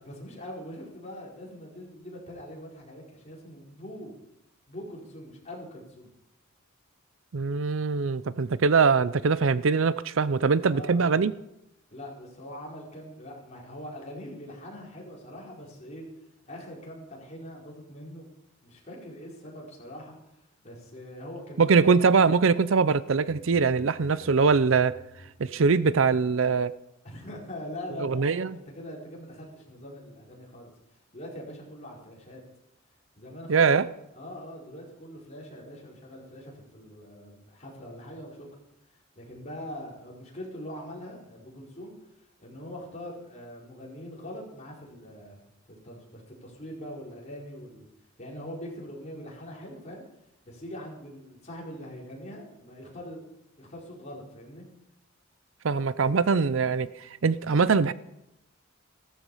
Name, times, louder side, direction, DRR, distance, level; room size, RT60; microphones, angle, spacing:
voice 1, 0.0-4.1 4.7-6.1 10.6-11.1 11.9-16.0 16.4-18.2 18.6-20.2 20.6-21.9 27.0-30.7 31.1-32.4 33.2-38.5 39.1-41.9 42.4-47.9 48.2-50.0 50.4-53.2 53.6-54.7, equal, 35° left, 4.8 m, -42 dB
voice 2, 7.3-11.3 21.6-24.9 25.4-26.7 28.0-28.6 33.5-33.9 55.6-57.9, right 5 dB, 70° right, 0.5 m, -22 dB
sound 1, 23.2-26.4, left 1 dB, 15° left, 5.2 m, -51 dB
16.0 x 13.5 x 5.6 m
head